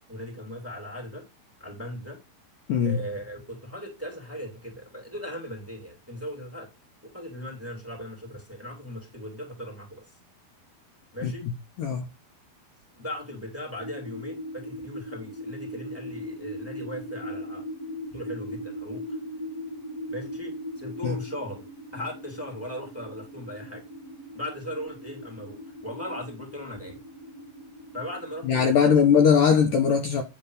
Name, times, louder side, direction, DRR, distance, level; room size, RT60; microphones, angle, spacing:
voice 1, 0.1-1.3 1.6-2.2 2.8-6.7 7.0-10.1 11.1-11.5 13.0-17.6 18.1-19.2 20.1-21.7 21.9-23.8 24.3-27.0 27.9-28.9, equal, 5° right, 2.6 m, -38 dB
voice 2, 11.2-11.5 11.8-12.1 21.0-21.2 28.4-30.2, left 7 dB, 65° left, 2.3 m, -20 dB
sound 1, 13.8-28.8, equal, 50° left, 2.5 m, -39 dB
11.0 x 4.1 x 5.0 m
omnidirectional pair, 4.8 m